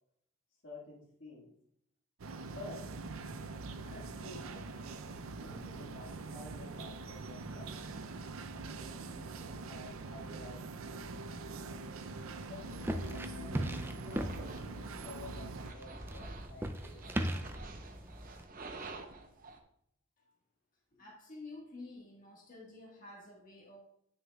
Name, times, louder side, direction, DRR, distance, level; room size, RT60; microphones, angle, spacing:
voice 1, 0.6-1.5 2.4-3.0 3.8-4.6 5.4-8.1 8.7-11.1 12.4-13.7 14.0-17.1, left 2 dB, 65° left, -4 dB, 1.7 m, -51 dB
sound 1, 2.2-15.7, right 3 dB, 90° right, 0.5 m, -44 dB
sound 2, 12.0-19.6, right 3 dB, 45° right, 0.7 m, -50 dB
sound 3, 12.7-18.5, right 1 dB, 10° right, 0.3 m, -39 dB
voice 2, 20.9-23.8, left 2 dB, 40° left, -3 dB, 1.6 m, -50 dB
9.3 x 6.3 x 2.3 m, 0.71 s
head